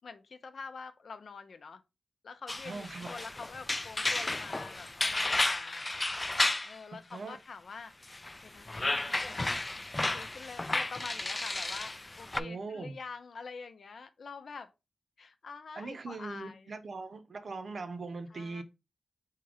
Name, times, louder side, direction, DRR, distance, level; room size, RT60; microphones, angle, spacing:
voice 1, 0.0-1.8 2.2-6.0 6.6-7.9 8.4-9.6 10.0-14.7 15.2-16.7 18.3-18.6, left 5 dB, 75° left, 0.6 m, -46 dB
sound 1, 2.5-6.7 8.1-12.4, left 2 dB, 25° left, 0.3 m, -33 dB
voice 2, 2.6-3.1 7.1-7.4 12.3-13.0 15.8-18.6, right 3 dB, 65° right, 0.7 m, -40 dB
3.7 x 2.9 x 4.7 m
wide cardioid pair, 75°, 0 cm